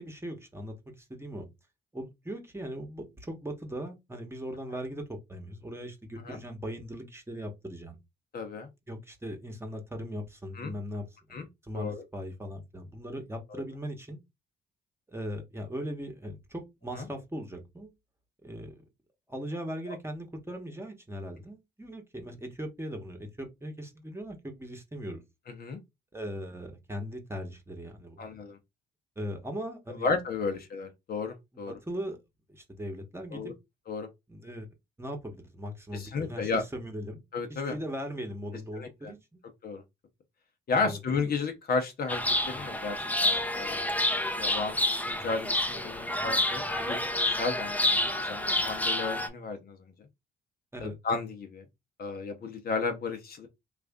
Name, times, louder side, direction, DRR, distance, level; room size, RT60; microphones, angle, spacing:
voice 1, 0.0-1.5 1.9-8.0 8.9-14.2 15.1-17.9 18.4-18.8 19.3-25.2 26.1-28.3 29.2-30.1 31.7-32.2 32.5-33.5 34.3-34.7 35.0-37.2 37.5-39.4 40.7-41.3 50.7-51.0, equal, 10° right, 1.1 m, -39 dB
voice 2, 8.3-8.7 10.5-10.7 11.3-11.4 11.7-12.0 13.5-13.6 16.9-17.1 19.9-20.0 25.5-25.8 28.2-28.6 30.0-31.8 33.3-33.5 33.9-34.1 35.9-36.6 37.3-37.8 38.7-39.1 39.6-39.8 40.7-44.8 45.1-47.0 47.3-49.9 50.8-51.6 52.0-53.5, left 4 dB, 50° left, 0.8 m, -33 dB
Chirp tweet, 42.1-49.3, left 1 dB, 10° left, 0.7 m, -29 dB
3.2 x 2.5 x 3.5 m
cardioid pair, 90°, 20 cm